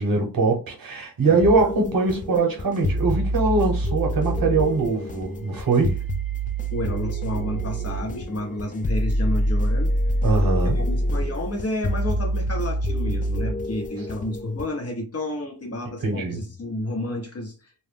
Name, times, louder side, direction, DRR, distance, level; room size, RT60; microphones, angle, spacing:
voice 1, 0.0-6.0 10.2-10.8 16.0-16.4, right 3 dB, 65° right, 0.9 m, -22 dB
sound 1, 1.4-14.7, equal, 25° left, 0.3 m, -26 dB
voice 2, 6.7-9.9 10.7-17.5, left 1 dB, 40° left, 0.8 m, -30 dB
2.2 x 2.0 x 3.3 m
cardioid pair, 40°, 37 cm